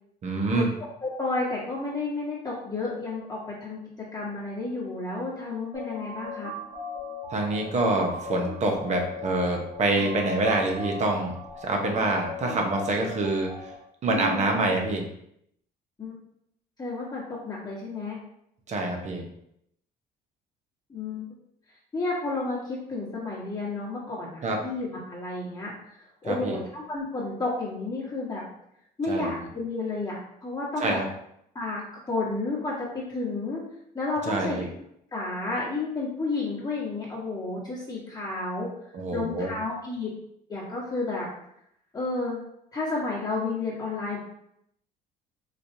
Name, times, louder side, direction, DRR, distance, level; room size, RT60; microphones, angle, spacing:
voice 1, 0.2-0.7 7.3-13.7 14.0-15.1 18.7-19.3 24.4-24.6 26.2-26.6 29.1-29.5 30.8-31.0 34.2-34.7 38.9-39.5, right 2 dB, 45° right, 2 dB, 0.9 m, -26 dB
voice 2, 1.0-6.5 14.1-14.4 16.0-16.1 16.8-18.2 20.9-21.2 21.9-25.7 26.2-28.4 29.0-31.0 31.5-31.8 32.1-33.6 33.9-34.6 35.1-38.7 39.1-40.1 40.5-41.3 41.9-42.4 42.7-44.2, left 3 dB, 25° left, -6 dB, 1.3 m, -31 dB
sound 1, 5.7-13.7, left 3 dB, 60° right, 1.2 m, -38 dB
4.2 x 3.1 x 2.7 m, 0.75 s
cardioid pair, 110°, 17 cm